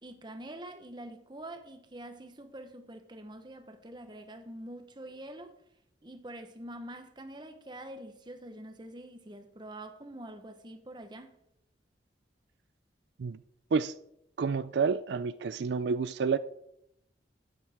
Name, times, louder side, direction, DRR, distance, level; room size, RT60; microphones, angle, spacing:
voice 1, 0.0-5.6 6.0-11.4, right 1 dB, 25° right, 1.0 m, -45 dB
voice 2, 14.4-16.4, right 5 dB, 75° right, 0.4 m, -29 dB
12.0 x 10.0 x 3.6 m
head